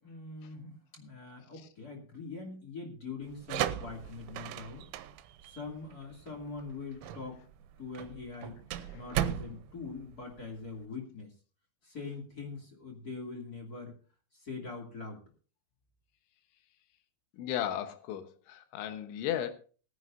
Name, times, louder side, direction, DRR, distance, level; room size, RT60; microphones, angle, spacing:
voice 1, 0.0-4.9 5.4-7.4 7.8-8.6 8.9-11.3 11.8-13.9 14.3-15.2, left 4 dB, 30° left, 2.1 m, -43 dB
sound 1, 3.2-10.8, right 11 dB, 90° right, 3.2 m, -37 dB
voice 2, 17.4-19.5, left 11 dB, 85° left, 3.5 m, -35 dB
21.0 x 9.8 x 2.6 m
omnidirectional pair, 5.3 m